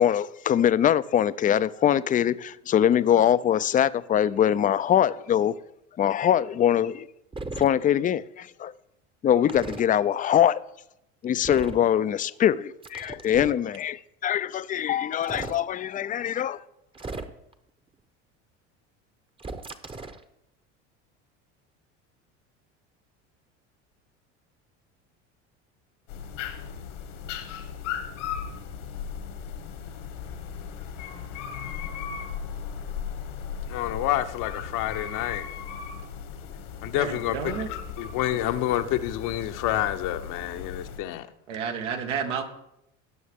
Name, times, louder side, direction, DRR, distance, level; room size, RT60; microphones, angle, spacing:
voice 1, 0.0-5.5 6.0-7.1 7.6-8.7 9.2-10.6 11.2-16.6, left 10 dB, 25° left, 0.4 m, -23 dB
sound 1, 7.3-7.7 9.5-9.8 11.4-11.9 12.8-13.6 15.1-15.6 16.9-17.5 19.4-20.2, right 3 dB, 15° right, 0.9 m, -36 dB
sound 2, 26.1-41.0, left 7 dB, 85° left, 1.9 m, -37 dB
voice 2, 33.7-35.5 36.8-37.4 38.0-41.3, left 13 dB, 60° left, 0.9 m, -28 dB
voice 3, 37.0-37.7 41.5-42.4, right 7 dB, 85° right, 1.7 m, -31 dB
18.0 x 6.3 x 3.6 m
hypercardioid pair, 85°, 35 cm